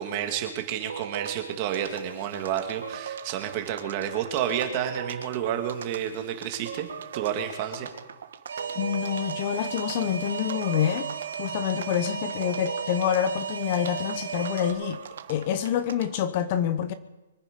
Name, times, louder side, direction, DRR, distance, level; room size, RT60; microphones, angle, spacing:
voice 1, 0.0-6.9 7.1-7.9, right 9 dB, 30° right, 2.0 m, -30 dB
sound 1, 0.9-16.3, right 7 dB, 65° right, 1.3 m, -40 dB
Alarm, 8.5-14.7, right 7 dB, 85° right, 2.1 m, -35 dB
voice 2, 8.8-11.1 11.4-15.0 15.3-16.9, left 10 dB, 35° left, 0.8 m, -27 dB
24.0 x 9.9 x 5.2 m
hypercardioid pair, 165°, 0 cm